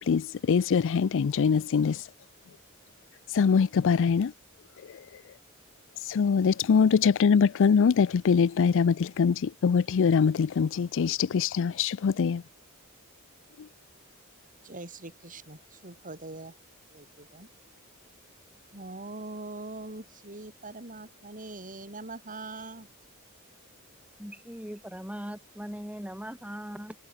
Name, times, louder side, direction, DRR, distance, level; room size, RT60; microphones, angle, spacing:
voice 1, 0.1-2.0 3.3-4.3 6.1-12.4, left 6 dB, 60° left, 0.4 m, -23 dB
voice 2, 14.6-16.5 16.9-17.5 18.7-22.9, right 2 dB, 40° right, 6.8 m, -42 dB
voice 3, 24.2-27.0, equal, 5° right, 6.6 m, -39 dB
head